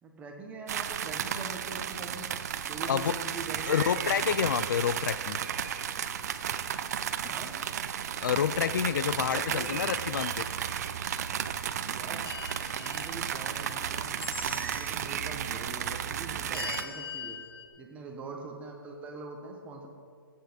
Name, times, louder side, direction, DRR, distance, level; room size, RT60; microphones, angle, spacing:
voice 1, 0.0-2.3 2.6-4.2 7.3-7.6 9.2-9.9 11.8-12.3 12.7-17.4 17.8-19.9, right 3 dB, 10° right, 1 dB, 1.3 m, -43 dB
sound 1, 0.7-16.8, right 9 dB, 45° right, 0.6 m, -33 dB
voice 2, 2.8-3.2 3.7-5.4 8.2-10.4, left 8 dB, 60° left, 15 dB, 0.4 m, -28 dB
sound 2, 12.2-13.7 14.2-15.1 16.5-17.7, left 6 dB, 80° left, 1.3 m, -41 dB
15.0 x 8.5 x 5.2 m, 2.2 s
hypercardioid pair, 155°, 12 cm